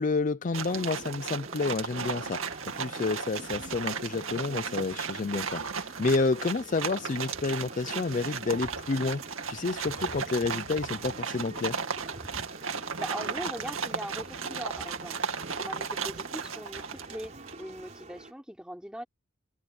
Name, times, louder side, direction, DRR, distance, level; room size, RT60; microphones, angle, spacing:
voice 1, 0.0-9.2 9.5-11.8, left 3 dB, 40° left, 0.5 m, -30 dB
sound 1, 0.5-17.7, right 5 dB, 75° right, 2.2 m, -35 dB
sound 2, 0.6-18.3, right 2 dB, 35° right, 4.9 m, -47 dB
sound 3, 7.7-13.5, right 4 dB, 55° right, 6.8 m, -60 dB
voice 2, 13.0-15.2 15.6-19.0, equal, 5° right, 5.0 m, -40 dB
head